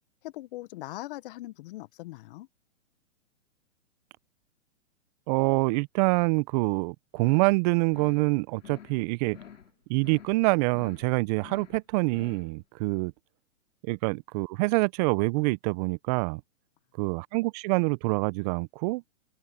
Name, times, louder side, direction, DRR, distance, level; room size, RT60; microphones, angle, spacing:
voice 1, 0.2-2.5, left 18 dB, 45° left, 1.5 m, -40 dB
voice 2, 5.3-9.4 9.9-13.1 13.8-16.4 17.0-19.0, right 27 dB, 30° right, 0.9 m, -26 dB
sound 1, 7.2-7.6 7.9-8.3 8.6-9.0 9.3-9.7 10.0-10.4 10.7-11.1 11.4-11.8 12.1-12.5, left 8 dB, 75° left, 3.6 m, -48 dB
hypercardioid pair, 125°, 38 cm